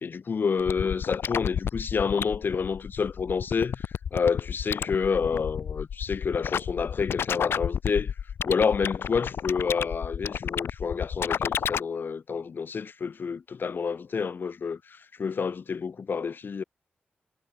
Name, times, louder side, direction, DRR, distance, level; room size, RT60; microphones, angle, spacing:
voice 1, 0.0-8.1 8.4-16.6, left 5 dB, 60° left, 1.2 m, -29 dB
sound 1, 0.6-11.8, left 8 dB, 85° left, 1.1 m, -31 dB
cardioid pair, 80°, 4 cm